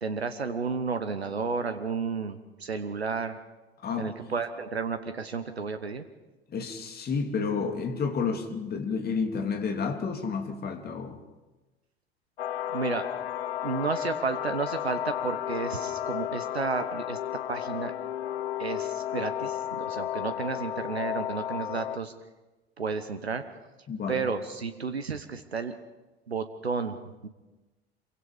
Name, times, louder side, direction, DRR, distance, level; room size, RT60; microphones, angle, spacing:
voice 1, 0.0-3.4 4.0-6.0 12.7-13.1 13.6-17.2 17.5-17.9 18.6-22.1 22.8-23.4 24.1-25.7 26.3-27.3, right 5 dB, 85° right, 9 dB, 1.2 m, -32 dB
voice 2, 3.8-4.1 6.5-11.2 23.9-24.2, left 5 dB, 30° left, 5 dB, 3.0 m, -30 dB
sound 1, 12.4-22.0, left 11 dB, 75° left, 0.8 m, -33 dB
27.0 x 23.5 x 5.1 m, 1.1 s
figure-of-eight pair, 70°, 31 cm